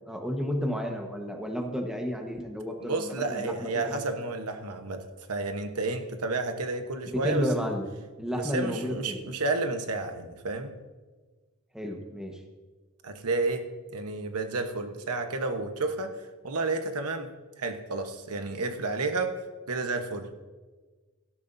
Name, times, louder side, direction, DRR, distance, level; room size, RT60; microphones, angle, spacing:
voice 1, 0.1-4.0 7.1-7.9 8.2-9.2 11.7-12.4, equal, 5° right, 2 dB, 1.3 m, -32 dB
voice 2, 2.9-7.7 8.3-10.7 13.0-16.1 16.4-17.3 17.6-19.4 19.7-20.3, right 3 dB, 85° right, 6 dB, 1.2 m, -31 dB
17.0 x 13.0 x 2.7 m, 1.3 s
head